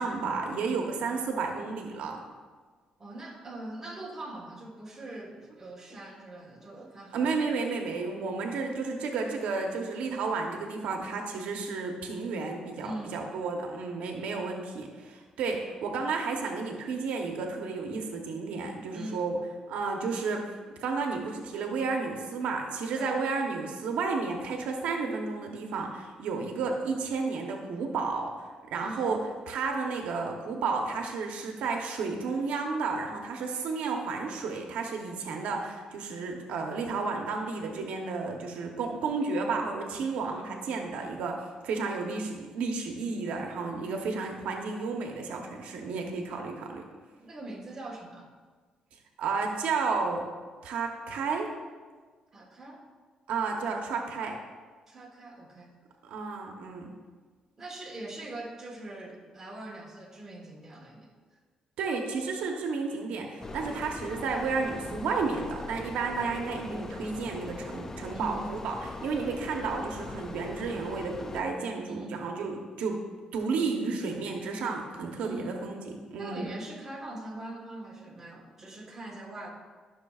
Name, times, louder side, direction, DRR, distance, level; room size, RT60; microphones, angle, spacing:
voice 1, 0.0-2.2 7.1-19.4 19.7-20.5 20.8-29.2 29.5-46.8 49.2-50.2 50.6-51.5 53.3-54.4 56.0-56.9 61.8-73.0 73.3-76.5, right 4 dB, 80° right, 2 dB, 1.0 m, -32 dB
voice 2, 3.0-7.2 12.8-13.3 18.9-19.3 23.0-23.2 28.8-29.1 47.2-48.3 52.3-52.8 54.9-55.7 57.6-61.1 68.1-68.5 71.9-72.2 75.2-75.5 76.2-79.5, right 1 dB, 20° right, -2 dB, 1.4 m, -42 dB
sound 1, 63.4-71.4, left 3 dB, 20° left, 0.4 m, -41 dB
13.5 x 6.3 x 2.4 m, 1.5 s
cardioid pair, 145°, 2 cm